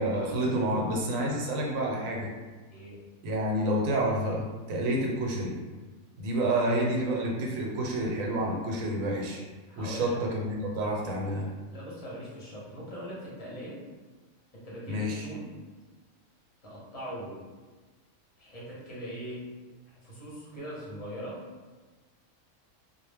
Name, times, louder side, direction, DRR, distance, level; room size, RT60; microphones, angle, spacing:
voice 1, 0.0-2.3 3.2-5.6 6.2-9.4 9.8-11.5 14.9-15.3, right 1 dB, 80° right, -1 dB, 1.0 m, -29 dB
voice 2, 2.7-3.0 9.7-10.2 11.7-13.8 14.5-15.5 16.6-17.5 18.4-19.4 20.0-21.4, equal, 35° left, -7 dB, 0.6 m, -41 dB
2.2 x 2.0 x 3.3 m, 1.3 s
omnidirectional pair, 1.4 m